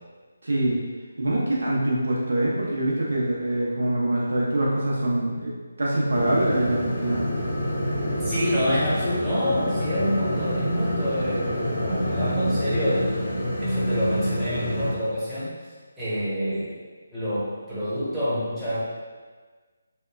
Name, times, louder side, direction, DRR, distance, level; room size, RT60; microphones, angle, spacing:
voice 1, 0.4-0.8 1.2-5.5 5.8-7.2, right 1 dB, 75° right, -5 dB, 0.6 m, -24 dB
sound 1, 6.1-14.9, equal, 55° left, 0.9 m, -27 dB
voice 2, 8.2-13.2 13.6-15.5 16.0-16.8 17.1-18.8, equal, 5° right, -15 dB, 0.8 m, -27 dB
2.9 x 2.1 x 2.3 m, 1.4 s
figure-of-eight pair, 160°, 0 cm